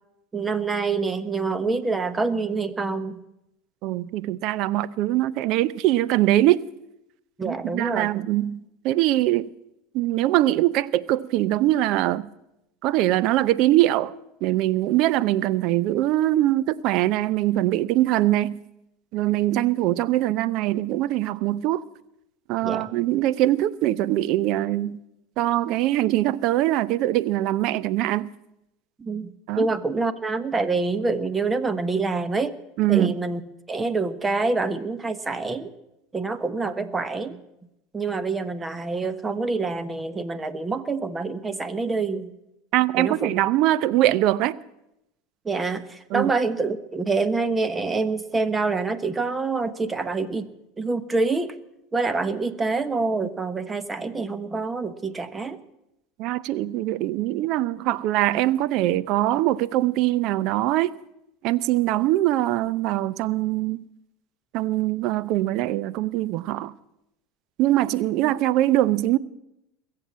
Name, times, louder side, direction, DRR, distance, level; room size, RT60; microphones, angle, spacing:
voice 1, 0.3-3.2 7.4-8.1 22.6-22.9 29.0-32.5 32.9-33.4 33.7-35.7 36.1-37.4 37.9-42.3 43.0-43.3 45.4-50.5 50.8-51.6 51.9-55.6 68.2-68.3, right 3 dB, 20° right, 1.2 m, -26 dB
voice 2, 3.8-6.6 7.5-9.5 9.9-12.3 12.8-14.1 14.4-18.6 19.1-21.8 22.5-25.0 25.4-28.3 29.5-29.7 32.8-33.1 42.7-44.6 46.1-46.3 56.2-60.9 61.4-63.8 64.5-66.7 67.6-69.2, right 15 dB, 60° right, 0.6 m, -22 dB
21.0 x 7.7 x 8.6 m
hypercardioid pair, 90°, 0 cm